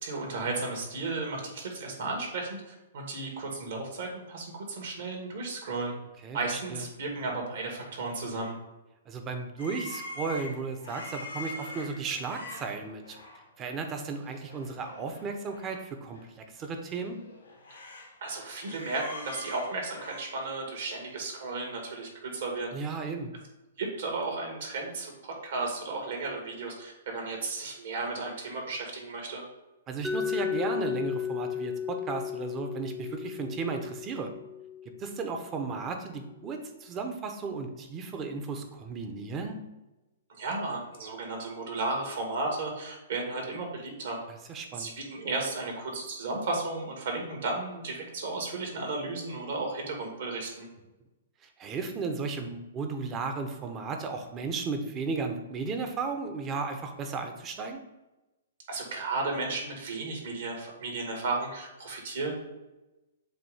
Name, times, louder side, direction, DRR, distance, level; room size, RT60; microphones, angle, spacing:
voice 1, 0.0-5.9 6.3-8.5 18.2-22.7 23.8-29.4 40.4-44.2 44.8-50.7 58.7-62.3, right 3 dB, 65° right, 1 dB, 2.3 m, -34 dB
voice 2, 6.2-6.8 9.1-13.2 13.6-17.2 22.7-23.3 29.9-34.3 35.0-39.6 44.3-44.9 51.4-57.8, right 4 dB, 25° right, 5 dB, 0.9 m, -35 dB
sound 1, 9.6-13.4 13.8-14.0 14.3-15.8 16.1-16.2 16.8-18.1 18.4-20.2, left 1 dB, 90° left, 2.2 m, -43 dB
Mallet percussion, 30.0-35.9, left 8 dB, ahead, 0.3 m, -35 dB
7.5 x 2.7 x 5.6 m, 1.0 s
hypercardioid pair, 130°, 0 cm